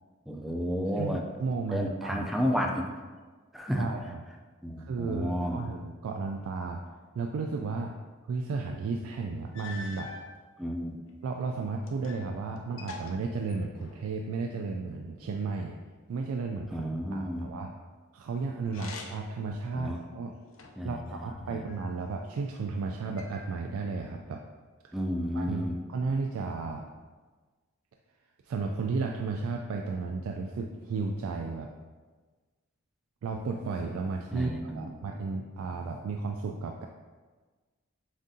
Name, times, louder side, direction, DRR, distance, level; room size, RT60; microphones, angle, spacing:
voice 1, 0.3-1.2 1.7-2.9 3.5-3.9 4.6-5.7 10.6-11.0 16.7-17.5 19.7-20.0 20.8-21.6 24.9-25.8 34.3-34.9, equal, ahead, 1 dB, 0.4 m, -32 dB
voice 2, 1.0-2.5 3.7-4.2 4.9-6.9 7.1-7.9 8.3-10.1 11.2-15.8 16.1-17.7 18.1-20.3 20.8-24.4 25.3-26.9 28.4-31.7 33.2-36.9, right 4 dB, 85° right, 2 dB, 0.3 m, -34 dB
sound 1, 9.0-9.1 9.5-10.3 11.1-12.3 12.6-14.1 18.6-19.4 19.9-20.9 21.7-22.5 23.2-23.9, left 3 dB, 70° left, 0.5 m, -45 dB
7.1 x 2.5 x 2.7 m, 1.4 s
head